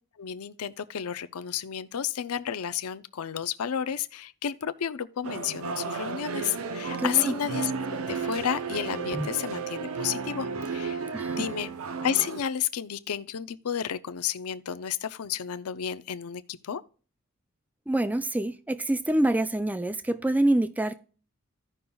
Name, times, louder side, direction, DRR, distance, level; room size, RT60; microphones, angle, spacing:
voice 1, 0.2-11.0 11.4-11.7 12.0-16.8, left 9 dB, 90° left, 0.5 m, -31 dB
sound 1, 5.2-12.4, right 5 dB, 70° right, 0.6 m, -33 dB
voice 2, 7.0-7.3 9.1-9.3 11.1-11.5 17.9-20.9, right 1 dB, 5° right, 0.3 m, -26 dB
15.5 x 5.4 x 2.3 m
head